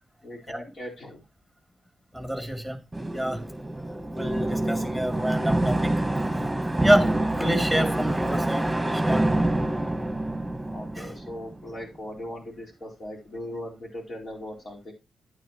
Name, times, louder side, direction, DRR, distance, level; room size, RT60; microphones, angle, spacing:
voice 1, 0.2-1.2 10.7-14.9, left 1 dB, 50° left, 4.3 m, -39 dB
voice 2, 2.1-2.8 3.1-3.4 4.1-6.0 6.8-9.3 11.0-11.1, equal, 5° left, 2.8 m, -27 dB
sound 1, 2.9-11.7, right 1 dB, 15° right, 1.6 m, -26 dB
10.5 x 9.3 x 3.0 m
hypercardioid pair, 40°, 0 cm